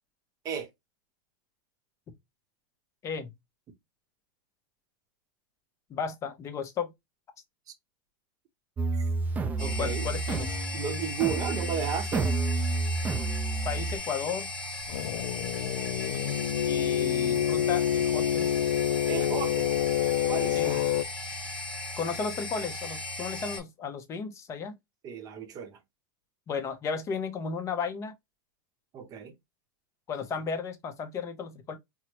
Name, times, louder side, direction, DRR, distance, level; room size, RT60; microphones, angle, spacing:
voice 1, 5.9-6.9 9.8-10.6 13.6-14.5 16.6-18.5 19.2-19.3 20.5-20.8 22.0-24.7 26.5-28.1 30.1-31.8, left 6 dB, 25° left, 0.6 m, -34 dB
sound 1, 8.8-14.0, right 3 dB, 15° right, 0.3 m, -30 dB
sound 2, 9.6-23.6, left 2 dB, 5° left, 1.4 m, -37 dB
voice 2, 9.6-10.1 10.7-12.3 19.1-19.7 20.3-20.8 25.0-25.8 28.9-29.3, right 8 dB, 30° right, 0.7 m, -33 dB
sound 3, 14.9-21.0, left 10 dB, 80° left, 0.4 m, -27 dB
4.4 x 2.1 x 2.8 m
supercardioid pair, 135°, 12 cm